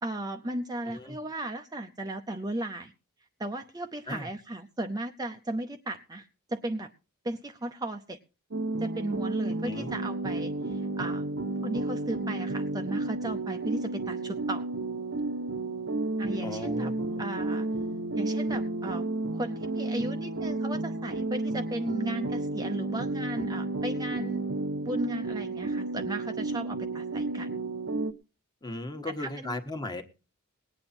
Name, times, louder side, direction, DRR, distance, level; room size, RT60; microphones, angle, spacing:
voice 1, 0.0-2.9 3.4-6.9 7.2-8.2 8.8-11.3 11.6-14.7 16.2-16.9 17.2-17.7 18.2-19.0 19.3-24.4 24.8-27.5 29.1-29.6, right 1 dB, 15° right, 5 dB, 0.7 m, -35 dB
voice 2, 0.8-1.2 4.1-4.3 9.6-9.9 16.4-17.2 28.6-30.0, left 2 dB, 20° left, 6 dB, 1.4 m, -37 dB
sound 1, 8.5-28.1, right 2 dB, 55° right, 0.9 m, -32 dB
19.5 x 8.9 x 4.3 m, 0.31 s
head